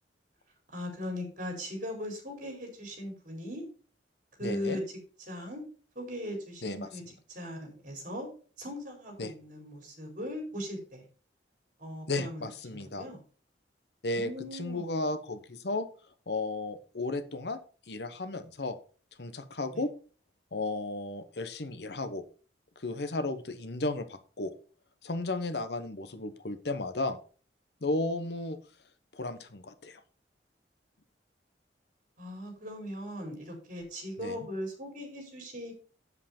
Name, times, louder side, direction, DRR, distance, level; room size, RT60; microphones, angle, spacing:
voice 1, 0.7-3.6 4.4-4.8 5.3-5.6 5.9-7.0 7.3-8.3 8.6-11.0 11.8-12.4 12.7-13.2 14.1-15.0 19.7-19.8 32.2-35.7, equal, 45° right, 2 dB, 4.4 m, -39 dB
voice 2, 4.4-4.8 6.6-6.9 9.2-9.3 12.1-13.1 14.0-15.9 16.3-17.6 17.9-18.8 19.2-19.9 20.5-22.2 22.8-24.5 25.0-27.2 27.8-28.6 29.1-30.0 34.2-34.4, left 2 dB, 65° left, 11 dB, 1.0 m, -34 dB
8.2 x 7.7 x 4.3 m, 0.38 s
head